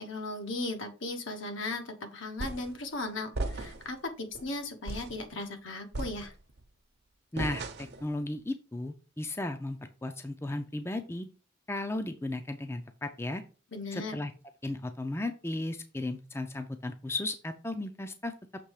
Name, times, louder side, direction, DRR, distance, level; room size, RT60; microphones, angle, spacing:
voice 1, 0.0-6.3 13.7-14.1, left 2 dB, 80° left, 5 dB, 1.3 m, -37 dB
sound 1, 2.4-2.8 3.3-4.0 4.3-4.5 4.9-5.2 5.9-6.6 7.4-8.1, right 2 dB, 55° right, 0.8 m, -36 dB
voice 2, 7.3-7.6 8.0-11.3 11.7-13.4 13.9-14.3 14.6-18.3, left 2 dB, 15° left, 7 dB, 0.4 m, -35 dB
6.8 x 3.2 x 4.8 m, 0.35 s
head